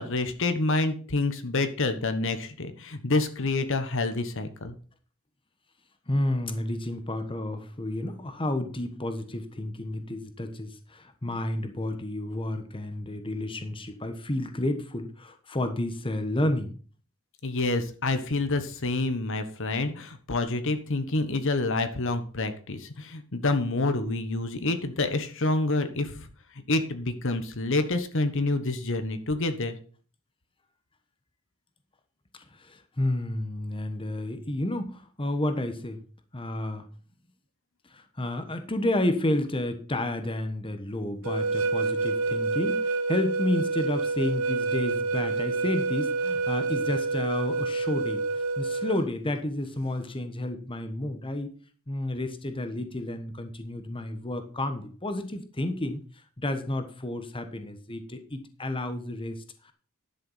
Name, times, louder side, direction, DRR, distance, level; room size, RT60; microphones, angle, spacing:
voice 1, 0.0-4.7 17.4-26.3 26.7-29.8, left 2 dB, 65° left, 9 dB, 1.3 m, -28 dB
voice 2, 6.1-16.7 32.3-36.0 36.3-36.9 37.9-51.5 51.9-56.0 56.4-59.7, left 1 dB, 25° left, 8 dB, 1.2 m, -31 dB
sound 1, 41.2-49.0, right 3 dB, 80° right, 1.1 m, -28 dB
11.0 x 6.8 x 5.6 m, 0.40 s
head